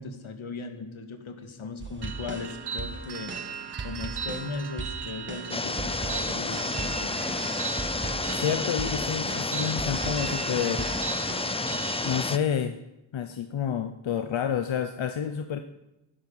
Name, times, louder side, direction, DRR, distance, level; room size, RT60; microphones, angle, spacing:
voice 1, 0.0-3.3 3.8-7.2, left 4 dB, 90° left, 6 dB, 2.0 m, -38 dB
sound 1, 1.8-11.4, right 3 dB, 25° right, 1.3 m, -39 dB
sound 2, 2.0-12.3, right 7 dB, 55° right, 0.8 m, -38 dB
sound 3, 5.5-12.4, left 3 dB, 15° left, 0.4 m, -30 dB
voice 2, 8.3-11.2 12.0-12.8 13.1-15.6, left 8 dB, 75° left, 7 dB, 0.8 m, -29 dB
15.5 x 12.0 x 5.6 m, 0.95 s
wide cardioid pair, 160°, 47 cm